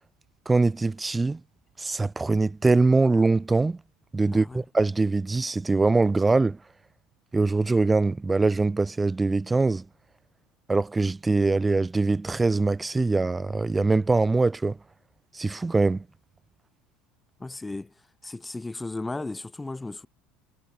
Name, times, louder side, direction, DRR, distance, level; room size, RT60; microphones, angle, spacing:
voice 1, 0.5-1.4 1.8-3.8 4.1-6.6 7.3-9.8 10.7-14.8 15.3-16.0, right 3 dB, 15° right, 0.6 m, -23 dB
voice 2, 4.3-4.6 17.4-20.1, left 2 dB, 10° left, 5.3 m, -35 dB
figure-of-eight pair, 70°, 0 cm